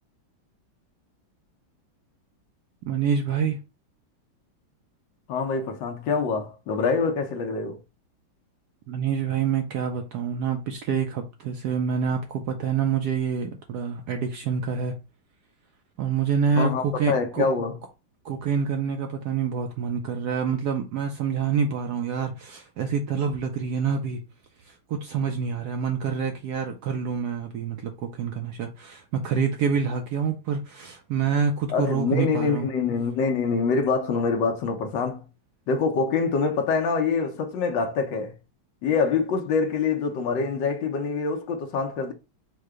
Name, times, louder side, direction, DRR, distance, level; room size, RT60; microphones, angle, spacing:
voice 1, 2.9-3.6 8.9-15.0 16.0-17.5 18.2-24.2 24.6-32.7, right 6 dB, 70° right, 1.0 m, -27 dB
voice 2, 5.3-7.8 16.6-17.8 31.7-35.2 35.7-38.3 38.8-42.1, left 5 dB, 70° left, 1.4 m, -25 dB
4.7 x 2.2 x 4.8 m
omnidirectional pair, 2.2 m